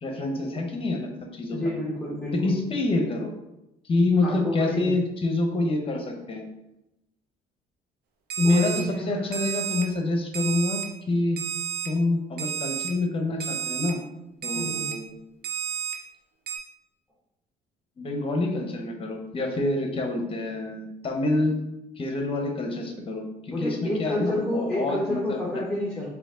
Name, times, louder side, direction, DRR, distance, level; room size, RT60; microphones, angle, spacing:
voice 1, 0.0-1.6 2.3-3.3 3.8-6.4 8.4-10.8 11.1-11.4 11.8-14.0 14.4-15.1 18.0-21.6 22.0-25.4, left 2 dB, 35° left, 3 dB, 0.9 m, -27 dB
voice 2, 1.5-2.6 4.2-4.9 8.4-9.3 14.5-14.9 23.5-26.1, left 1 dB, ahead, -6 dB, 1.1 m, -29 dB
Alarm, 8.3-8.8 9.3-9.8 10.3-10.8 11.4-11.9 12.4-12.9 13.4-13.9 14.4-14.9 15.4-15.9 16.5-16.6, right 9 dB, 65° right, 0.7 m, -31 dB
5.0 x 2.7 x 3.7 m, 0.90 s
cardioid pair, 110°, 17 cm